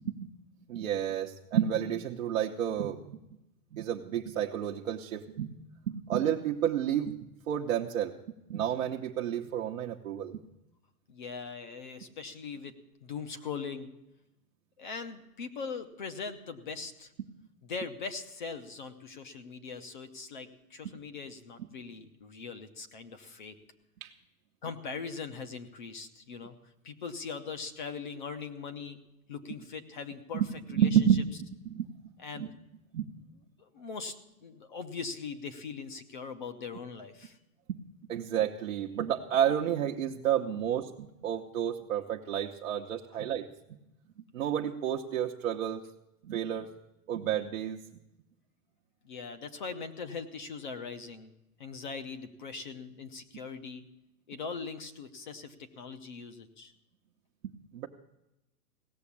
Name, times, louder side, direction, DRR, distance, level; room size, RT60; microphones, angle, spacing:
voice 1, 0.7-3.2 3.7-5.5 5.9-7.2 7.5-8.1 8.5-10.4 20.8-20.9 24.0-24.1 30.3-30.5 30.7-31.2 31.7-31.9 32.4-32.5 32.9-33.1 37.7-37.8 38.1-43.5 44.3-45.8 46.2-46.7 47.1-47.8 57.4-57.9, right 9 dB, 55° right, 0 dB, 1.0 m, -30 dB
voice 2, 11.1-12.7 13.0-13.9 14.8-17.1 17.6-23.6 24.6-29.0 29.3-30.4 30.7-31.0 32.2-32.5 33.6-34.2 34.4-37.4 49.0-51.3 51.6-53.8 54.3-56.7, left 5 dB, 30° left, 9 dB, 0.8 m, -41 dB
17.0 x 7.1 x 8.5 m, 0.89 s
hypercardioid pair, 175°, 47 cm